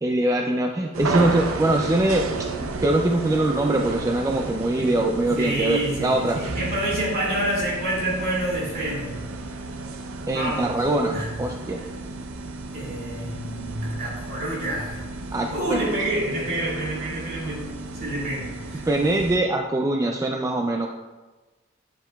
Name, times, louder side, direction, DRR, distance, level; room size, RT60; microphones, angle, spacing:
voice 1, 0.0-2.3 2.6-6.4 10.3-11.8 15.3-15.8 18.9-20.9, right 1 dB, 15° right, 2 dB, 0.3 m, -23 dB
sound 1, 0.9-19.4, right 3 dB, 85° right, 0.6 m, -33 dB
voice 2, 5.4-9.2 10.3-10.7 11.1-11.4 11.8-11.9 12.7-15.0 15.5-17.7 18.0-18.8, right 1 dB, 50° right, -5 dB, 2.5 m, -28 dB
9.0 x 7.6 x 2.3 m, 1.2 s
head